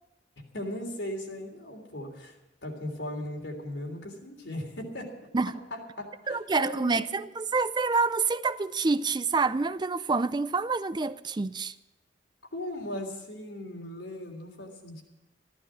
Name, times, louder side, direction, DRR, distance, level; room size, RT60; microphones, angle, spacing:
voice 1, 0.5-2.4 2.6-5.1 5.7-7.3 12.5-15.0, left 1 dB, 85° left, 3.3 m, -38 dB
voice 2, 6.3-11.7, right 4 dB, 25° right, 0.4 m, -27 dB
14.0 x 12.5 x 6.3 m
head